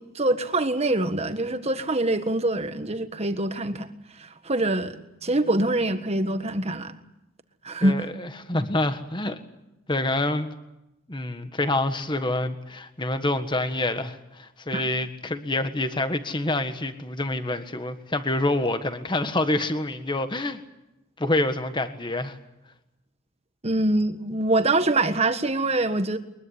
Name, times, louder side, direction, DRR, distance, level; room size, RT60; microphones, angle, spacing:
voice 1, 0.0-3.9 4.2-7.0 7.6-8.1 14.7-14.8 23.6-26.2, right 2 dB, 30° right, 1.6 m, -24 dB
voice 2, 7.8-9.4 9.9-10.5 11.1-20.6 21.2-22.4, left 2 dB, 20° left, 1.6 m, -27 dB
23.0 x 21.5 x 9.7 m
head